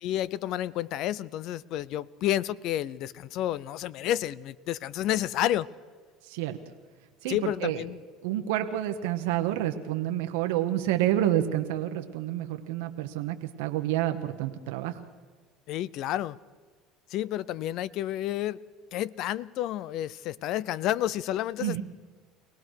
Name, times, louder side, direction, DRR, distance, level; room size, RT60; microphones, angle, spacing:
voice 1, 0.0-5.7 7.3-8.0 15.7-16.4 17.1-18.6 18.9-21.8, left 13 dB, 65° left, 0.5 m, -30 dB
voice 2, 6.2-6.6 7.2-7.8 8.2-15.0 21.6-21.8, right 12 dB, 85° right, 1.1 m, -29 dB
24.0 x 18.0 x 6.5 m
supercardioid pair, 100°, 0 cm